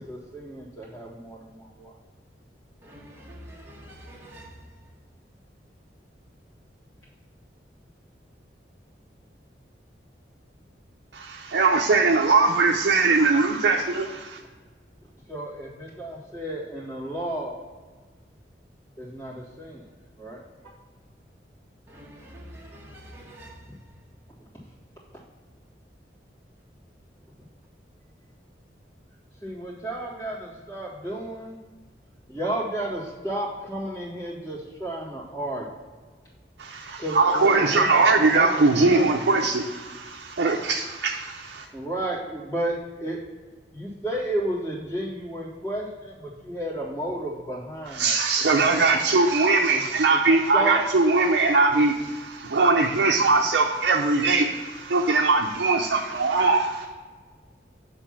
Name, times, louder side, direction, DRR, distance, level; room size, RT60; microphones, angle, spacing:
voice 1, 0.0-1.5 1.8-1.9 15.3-17.6 19.0-19.8 20.2-20.4 29.4-31.6 32.3-35.6 37.0-37.9 38.2-39.1 41.7-42.7 43.0-43.2 43.7-46.1 46.4-48.1 49.7-49.8 50.1-50.2 50.5-50.8, right 1 dB, 25° left, -10 dB, 2.0 m, -32 dB
voice 2, 2.8-4.6 21.9-23.7, equal, 15° right, -4 dB, 1.4 m, -45 dB
voice 3, 11.1-14.4 36.6-41.7 47.9-56.8, right 3 dB, 75° right, 1 dB, 0.6 m, -21 dB
8.0 x 3.4 x 6.0 m, 1.4 s
head